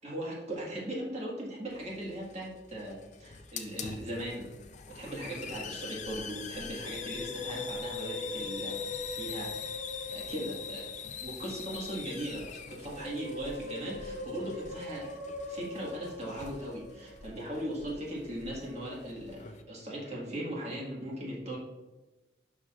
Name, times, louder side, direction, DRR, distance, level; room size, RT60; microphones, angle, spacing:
voice 1, 0.0-4.6 4.9-8.8 9.1-9.5 10.1-10.8 11.2-15.2 15.5-21.6, right 1 dB, 35° right, -4 dB, 1.7 m, -38 dB
Hiss, 1.7-19.6, left 6 dB, 40° left, 0.5 m, -44 dB
Musical instrument, 6.6-11.3 12.5-17.4 18.5-18.9, left 2 dB, 85° left, 1.7 m, -42 dB
11.0 x 4.7 x 2.4 m, 1.1 s
head